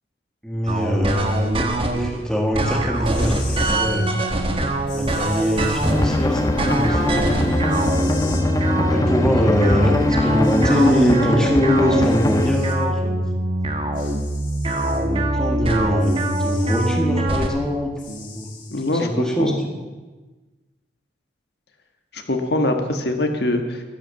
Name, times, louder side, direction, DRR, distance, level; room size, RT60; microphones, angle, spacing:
voice 1, 0.4-4.2 4.9-7.5 8.8-13.3 14.8-18.5 18.9-19.7, equal, 5° left, 0 dB, 1.5 m, -23 dB
sound 1, 0.7-2.1 2.5-6.1 6.6-17.5, right 1 dB, 30° right, 1.2 m, -23 dB
sound 2, 3.0-3.8 4.9-5.9 7.7-8.4 9.9-10.0 10.4-11.2 12.0-12.8 13.9-15.0 16.0-17.0 18.0-18.9, left 6 dB, 45° left, 2.3 m, -40 dB
sound 3, 5.8-12.5, left 1 dB, 20° left, 1.1 m, -22 dB
voice 2, 18.7-19.6 22.1-23.8, left 1 dB, 65° left, 4 dB, 1.5 m, -23 dB
12.0 x 11.0 x 7.0 m, 1.2 s
head